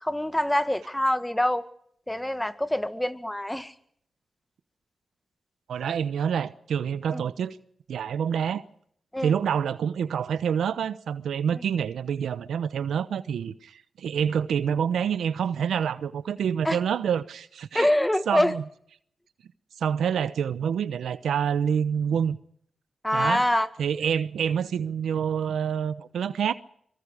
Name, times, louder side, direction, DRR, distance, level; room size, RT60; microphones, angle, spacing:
voice 1, 0.0-1.7 2.1-3.7 7.1-7.2 9.1-9.3 16.7-16.8 17.7-18.5 23.0-23.7, left 1 dB, 10° left, 1.8 m, -25 dB
voice 2, 5.7-7.6 7.9-8.6 9.2-17.9 18.3-18.6 19.8-22.4 23.1-23.5 23.8-26.5, right 8 dB, 85° right, 0.9 m, -27 dB
24.5 x 23.0 x 5.0 m
cardioid pair, 50°, 0 cm